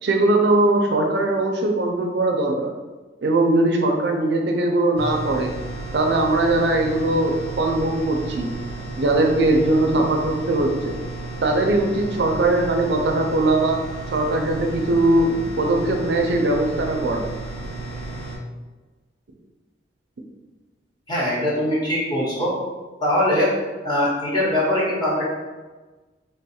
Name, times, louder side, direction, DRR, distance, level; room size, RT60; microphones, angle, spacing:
voice 1, 0.0-2.7 3.2-5.5 5.9-8.5 9.0-11.0 11.4-13.8 14.1-15.3 15.6-17.2, right 2 dB, 65° right, 2 dB, 0.5 m, -20 dB
sound 1, 5.0-18.4, right 2 dB, 70° left, 1.4 m, -33 dB
voice 2, 21.1-22.5 23.0-23.5 23.8-25.2, left 1 dB, 25° left, -6 dB, 1.1 m, -21 dB
3.4 x 2.3 x 4.2 m, 1.2 s
head